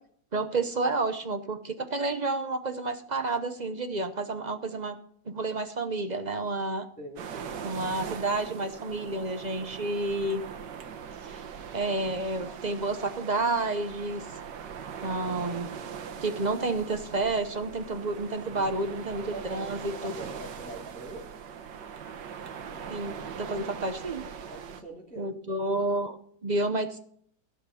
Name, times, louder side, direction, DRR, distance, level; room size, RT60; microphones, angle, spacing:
voice 1, 0.3-5.0 5.3-6.9 7.6-10.4 11.2-11.4 11.7-14.2 15.0-15.8 16.2-19.2 19.5-20.1 22.9-24.2 25.2-26.2 26.4-27.0, right 2 dB, 40° right, 8 dB, 0.6 m, -30 dB
voice 2, 7.0-7.5 18.5-18.9 19.3-21.3 23.6-23.7 24.5-25.3, right 2 dB, 5° left, -5 dB, 2.4 m, -43 dB
sound 1, 7.2-24.8, right 7 dB, 80° right, 1.7 m, -41 dB
15.5 x 5.9 x 6.9 m, 0.62 s
omnidirectional pair, 1.9 m